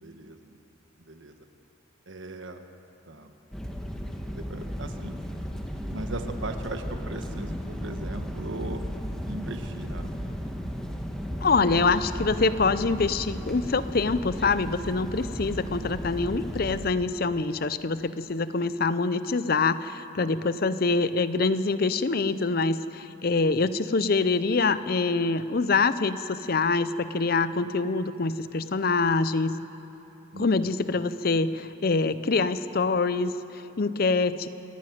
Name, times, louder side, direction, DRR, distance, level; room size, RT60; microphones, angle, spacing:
voice 1, 0.0-0.6 1.0-1.5 2.1-2.6 3.1-3.3 4.4-5.2 5.9-8.8 9.3-10.1 11.2-11.4 11.7-11.9 30.3-30.8, right 2 dB, 65° right, 6 dB, 1.4 m, -38 dB
sound 1, 3.5-16.9, equal, 5° left, 1.2 m, -35 dB
voice 2, 11.4-29.6 30.4-34.5, left 3 dB, 45° left, 13 dB, 0.6 m, -25 dB
27.0 x 10.5 x 9.3 m, 2.9 s
head